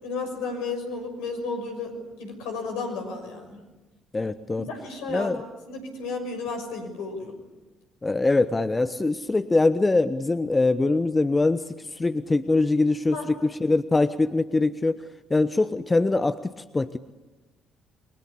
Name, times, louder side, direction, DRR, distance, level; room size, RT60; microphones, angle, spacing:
voice 1, 0.0-1.9 2.2-3.6 4.6-5.4 5.7-7.3 13.1-13.3, left 4 dB, 70° left, 4 dB, 6.3 m, -33 dB
voice 2, 4.1-4.6 5.1-5.4 8.0-11.6 12.0-15.0 15.3-17.0, left 2 dB, 20° left, 12 dB, 1.1 m, -23 dB
28.5 x 23.5 x 8.4 m, 1.1 s
figure-of-eight pair, 45°, 0 cm